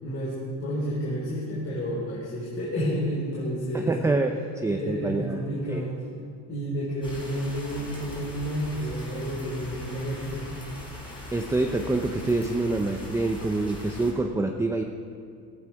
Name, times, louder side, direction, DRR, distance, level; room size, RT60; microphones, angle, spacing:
voice 1, 0.0-3.9 4.7-5.9 6.5-10.5, equal, 40° left, -7 dB, 4.5 m, -30 dB
voice 2, 3.7-5.4 5.7-5.8 11.3-14.8, right 2 dB, 10° right, 4 dB, 0.6 m, -26 dB
sound 1, 7.0-14.1, left 1 dB, 15° left, 5.0 m, -41 dB
18.0 x 16.0 x 4.7 m, 2.4 s
cardioid pair, 135°, 37 cm